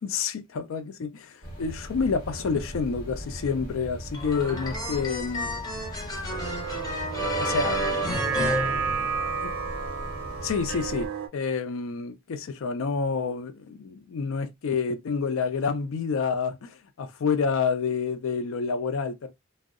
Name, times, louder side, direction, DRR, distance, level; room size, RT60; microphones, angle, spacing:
voice 1, 0.0-5.5 7.4-8.1 9.4-9.5 10.4-11.1 11.3-19.3, left 5 dB, 65° left, 0.4 m, -28 dB
sound 1, 1.4-11.1, right 1 dB, 50° left, 0.9 m, -39 dB
sound 2, 4.1-9.5, equal, 20° left, 0.6 m, -31 dB
sound 3, 6.3-11.3, right 6 dB, 75° right, 0.5 m, -32 dB
2.6 x 2.0 x 2.4 m
head